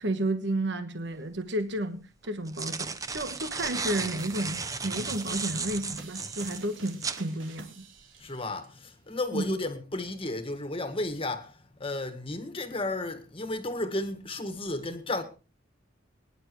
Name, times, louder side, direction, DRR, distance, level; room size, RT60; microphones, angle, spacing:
voice 1, 0.0-7.9 9.3-9.6, right 1 dB, 60° right, 1.3 m, -32 dB
sound 1, 1.2-1.3 2.2-7.2, right 4 dB, 15° right, 0.8 m, -34 dB
sound 2, 3.7-8.7, right 4 dB, 85° right, 3.7 m, -49 dB
voice 2, 8.2-15.2, left 2 dB, 30° left, 1.8 m, -33 dB
23.0 x 10.5 x 3.1 m
head